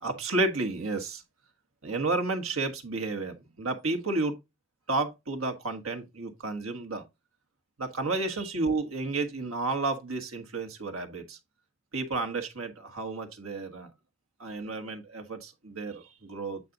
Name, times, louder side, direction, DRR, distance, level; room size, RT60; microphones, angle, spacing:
voice 1, 0.0-1.2 1.8-4.4 4.9-7.0 7.8-11.4 11.9-13.9 14.4-16.6, right 3 dB, 80° right, 1.6 m, -31 dB
8.7 x 4.2 x 3.9 m
head